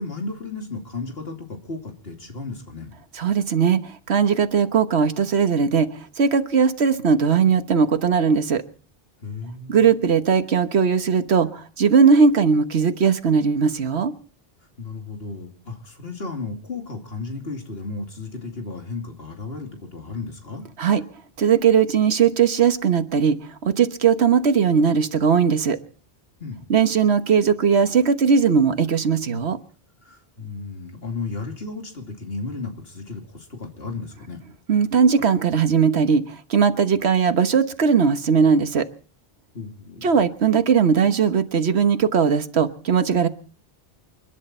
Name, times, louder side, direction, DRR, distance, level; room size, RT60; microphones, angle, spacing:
voice 1, 0.0-2.9 9.2-9.9 14.8-20.6 26.4-26.7 30.0-34.4 39.5-40.1, left 3 dB, 65° left, 3 dB, 3.0 m, -34 dB
voice 2, 3.1-8.6 9.7-14.1 20.8-21.0 21.4-25.8 26.7-29.6 34.7-38.9 40.0-43.3, right 6 dB, 80° right, 10 dB, 1.5 m, -19 dB
29.0 x 11.0 x 4.3 m, 0.43 s
omnidirectional pair, 1.1 m